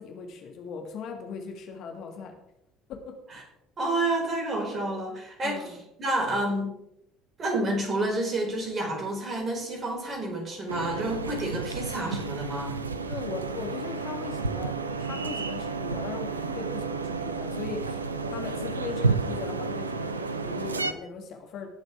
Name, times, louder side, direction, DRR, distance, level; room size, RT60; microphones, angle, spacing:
voice 1, 0.0-2.3 2.9-3.5 5.4-5.8 13.1-18.0 18.3-21.7, left 5 dB, 50° left, 3 dB, 2.0 m, -39 dB
voice 2, 3.8-5.7 6.0-6.7 7.4-12.8, right 1 dB, 35° right, 1 dB, 4.7 m, -29 dB
sound 1, 10.7-20.9, right 4 dB, 85° right, 0.7 m, -31 dB
19.0 x 7.9 x 3.6 m, 0.80 s
figure-of-eight pair, 60°, 0 cm